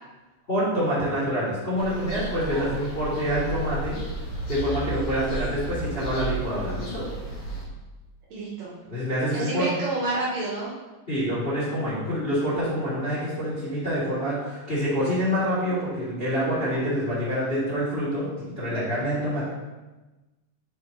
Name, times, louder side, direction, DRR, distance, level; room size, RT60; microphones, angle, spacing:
voice 1, 0.5-4.0 4.5-7.0 8.9-9.7 11.1-19.5, equal, 20° left, -10 dB, 1.6 m, -26 dB
sound 1, 1.8-7.7, right 2 dB, 65° left, 2.8 m, -33 dB
voice 2, 8.3-8.7 9.3-10.7, right 2 dB, 65° right, -5 dB, 2.2 m, -29 dB
6.6 x 4.8 x 3.8 m, 1.1 s
omnidirectional pair, 3.9 m